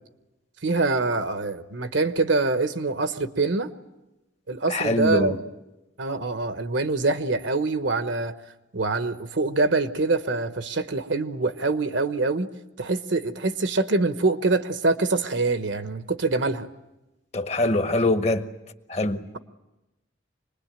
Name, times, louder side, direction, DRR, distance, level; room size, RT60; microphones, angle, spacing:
voice 1, 0.6-3.7 4.5-5.4 6.0-8.3 8.7-12.5 12.8-16.7, right 3 dB, 70° right, 1.1 m, -24 dB
voice 2, 4.7-5.4 17.3-18.5 18.9-19.2, left 2 dB, 35° left, 1.0 m, -23 dB
26.0 x 20.5 x 9.0 m
head